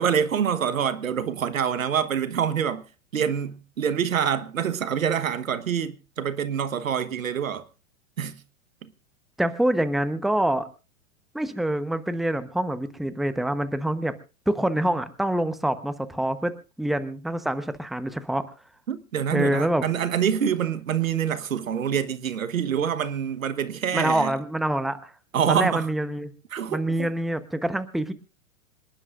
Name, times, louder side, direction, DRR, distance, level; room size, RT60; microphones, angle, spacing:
voice 1, 0.0-2.8 3.1-7.6 8.2-8.4 8.8-8.9 18.9-24.3 25.3-25.9 26.5-27.1, right 8 dB, 85° right, 1.2 m, -26 dB
voice 2, 9.4-10.7 11.3-14.2 14.5-16.5 16.8-18.4 19.3-19.8 23.9-25.1 25.5-26.3 26.7-28.1, right 1 dB, ahead, 0.9 m, -25 dB
27.0 x 11.0 x 2.5 m
hypercardioid pair, 105°, 40 cm